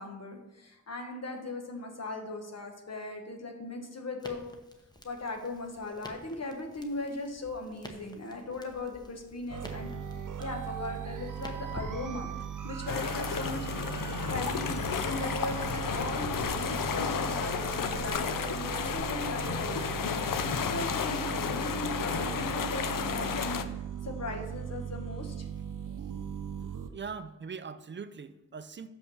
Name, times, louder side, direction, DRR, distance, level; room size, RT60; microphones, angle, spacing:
voice 1, 0.0-4.4 5.0-9.9 10.4-12.3 12.6-20.0 20.4-23.6 24.0-25.5, left 2 dB, 50° left, 3 dB, 1.3 m, -38 dB
Crackle, 4.2-12.5, left 1 dB, 15° left, 0.9 m, -50 dB
sound 1, 9.5-26.9, right 8 dB, 75° right, 0.7 m, -38 dB
sound 2, 12.9-23.7, left 7 dB, 85° left, 0.6 m, -32 dB
voice 2, 26.9-28.9, right 5 dB, 35° right, 12 dB, 0.5 m, -41 dB
6.6 x 5.6 x 6.2 m, 1.0 s
wide cardioid pair, 130°, 32 cm